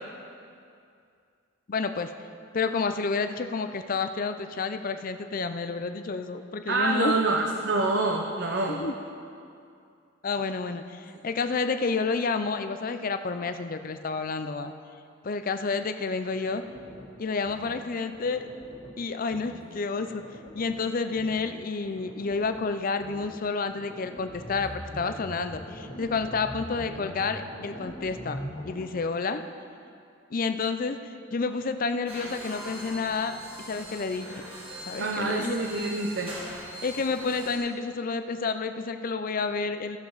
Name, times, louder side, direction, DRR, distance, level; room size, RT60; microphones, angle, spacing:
voice 1, 1.7-2.1 2.5-7.2 8.7-8.9 10.2-14.7 15.2-16.6 17.2-18.5 19.0-20.2 20.6-28.4 28.7-29.4 30.3-34.4 34.9-35.6 36.8-40.0, left 4 dB, 45° left, 9 dB, 0.5 m, -30 dB
voice 2, 6.7-8.8 35.0-36.3, right 3 dB, 55° right, 1 dB, 0.7 m, -26 dB
sound 1, 16.5-17.1 17.4-17.8 18.1-19.0 19.3-19.6 20.0-20.8 21.1-21.5 21.8-22.7 23.0-23.3 23.7-28.8, equal, 65° left, 2.7 m, -42 dB
sound 2, 32.1-37.6, right 1 dB, 25° right, 1.9 m, -42 dB
16.5 x 6.9 x 4.0 m, 2.4 s
head